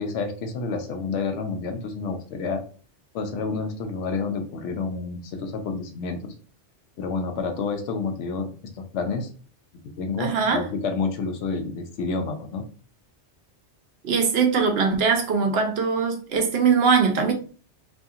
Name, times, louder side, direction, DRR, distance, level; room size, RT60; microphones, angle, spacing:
voice 1, 0.0-2.6 3.1-6.3 7.0-9.3 10.0-12.6, left 4 dB, 85° left, 0.9 m, -29 dB
voice 2, 10.2-10.6 14.0-17.3, right 5 dB, 65° right, 0.8 m, -21 dB
2.7 x 2.7 x 2.4 m
omnidirectional pair, 1.2 m